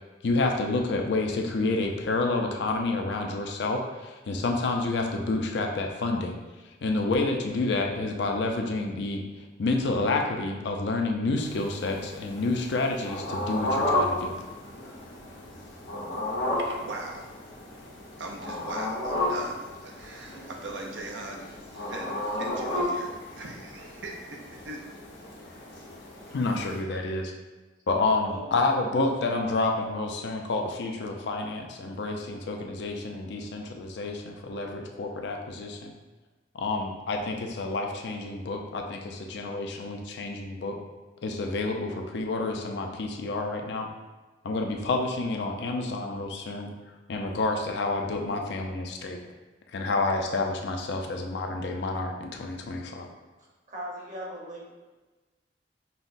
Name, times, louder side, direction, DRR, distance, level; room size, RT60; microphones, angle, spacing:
voice 1, 0.2-6.4 6.8-9.2 9.6-14.4 26.3-27.3 27.9-35.9 36.5-40.8 41.2-43.9 44.4-46.7 47.1-49.2 49.7-53.1, left 3 dB, 70° left, 2 dB, 0.4 m, -29 dB
sound 1, 11.4-26.8, left 1 dB, 85° left, 1.0 m, -33 dB
voice 2, 16.6-17.3 18.2-24.8, right 2 dB, 85° right, 1 dB, 0.6 m, -40 dB
voice 3, 53.7-54.7, right 1 dB, 45° right, -4 dB, 0.9 m, -39 dB
5.4 x 2.1 x 2.5 m, 1.2 s
head